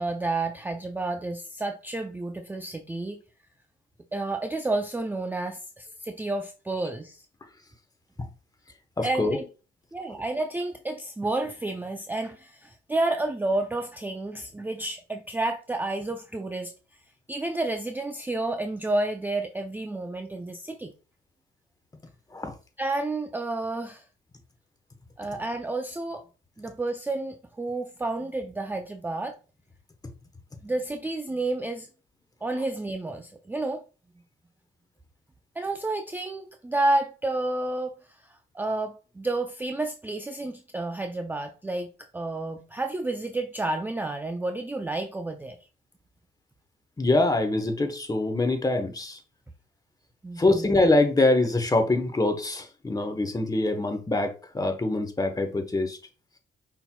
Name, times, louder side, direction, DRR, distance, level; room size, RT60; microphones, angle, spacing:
voice 1, 0.0-3.2 4.1-7.2 9.0-9.4 9.9-16.7 17.3-20.9 22.8-24.0 25.2-26.2 26.6-29.4 30.6-31.9 32.4-33.8 35.6-38.0 38.5-45.6 50.2-50.7, right 2 dB, 10° right, 0.4 m, -30 dB
voice 2, 9.0-9.4 22.3-22.5 47.0-49.2 50.4-56.0, left 2 dB, 20° left, 1.0 m, -24 dB
5.4 x 4.4 x 2.2 m
cardioid pair, 90°, 20 cm